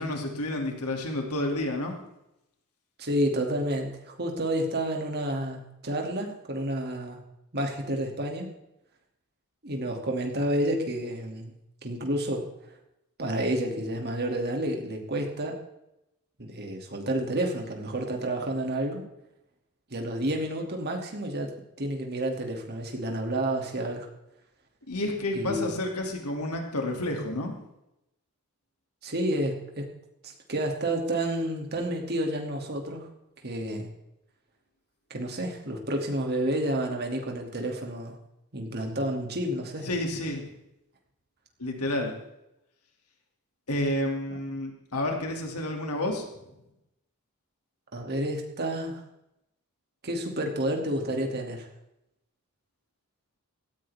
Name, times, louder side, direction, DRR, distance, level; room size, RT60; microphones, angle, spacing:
voice 1, 0.0-2.0 24.9-27.5 39.9-40.4 41.6-42.1 43.7-46.2, left 1 dB, 90° left, 2 dB, 2.7 m, -30 dB
voice 2, 3.0-7.2 7.5-8.5 9.6-11.5 11.8-12.5 13.2-15.6 16.4-19.1 19.9-24.1 25.3-25.7 29.0-29.9 30.2-33.1 33.4-33.9 35.1-38.2 38.5-39.9 47.9-49.0 50.0-51.7, right 1 dB, 45° right, 2 dB, 2.6 m, -30 dB
17.5 x 14.5 x 3.6 m, 0.86 s
head